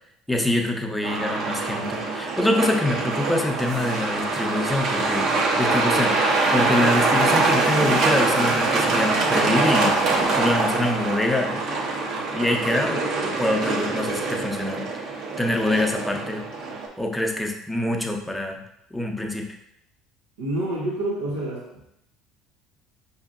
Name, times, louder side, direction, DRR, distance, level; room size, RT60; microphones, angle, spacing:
voice 1, 0.3-11.6 12.3-16.4 17.0-18.6 18.9-19.6, left 1 dB, 5° left, 1 dB, 0.7 m, -25 dB
Truck, 1.0-16.9, right 3 dB, 60° right, 0.8 m, -24 dB
voice 2, 20.4-21.8, right 1 dB, 90° right, -3 dB, 0.7 m, -28 dB
4.9 x 2.8 x 2.5 m, 0.77 s
hypercardioid pair, 75°, 0 cm